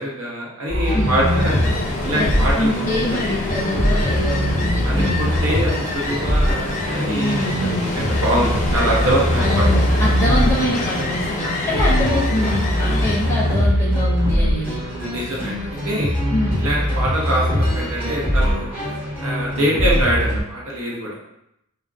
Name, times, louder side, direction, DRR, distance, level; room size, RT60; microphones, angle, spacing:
voice 1, 0.0-1.6 2.0-2.7 4.8-9.6 15.1-16.1 16.6-18.7 19.2-21.1, right 1 dB, 65° right, -3 dB, 0.8 m, -24 dB
sound 1, 0.7-20.4, equal, 10° right, 1.2 m, -22 dB
Ocean, 0.8-13.6, left 2 dB, 35° left, 0.5 m, -27 dB
voice 2, 0.9-1.4 2.1-2.3 2.5-5.3 7.1-7.9 9.4-14.8 16.3-16.6, left 1 dB, 15° left, -7 dB, 0.9 m, -24 dB
2.4 x 2.1 x 3.7 m, 0.80 s
head